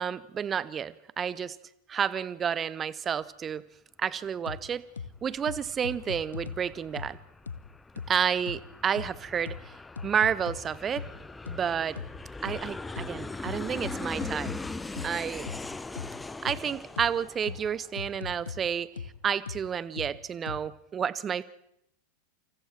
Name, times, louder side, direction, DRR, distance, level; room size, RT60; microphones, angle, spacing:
voice 1, 0.0-1.6 1.9-3.6 4.0-4.8 5.2-7.2 8.1-9.7 10.0-11.1 11.5-12.0 12.4-14.5 15.0-15.5 16.4-21.4, right 8 dB, 25° right, 0.8 m, -30 dB
sound 1, 4.5-4.6 5.0-5.1 5.5-6.6 7.0-7.1 7.5-7.6 8.0-8.1 8.5-8.6 9.0-9.1 9.5-9.6 10.0-10.6 11.0-11.1 11.5-11.6 12.0-12.1 12.5-12.6 13.0-13.1 13.5-14.6 15.0-15.1 15.5-15.6 16.0-16.1 16.5-16.6 17.0-17.1 17.5-17.6 18.0-18.6 19.0-19.1 19.5-19.6 20.0-20.1 20.5-20.6, left 6 dB, 70° left, 1.0 m, -37 dB
Aircraft, 5.2-18.4, left 3 dB, 10° left, 0.8 m, -41 dB
28.5 x 27.0 x 4.5 m
figure-of-eight pair, 90°, 0 cm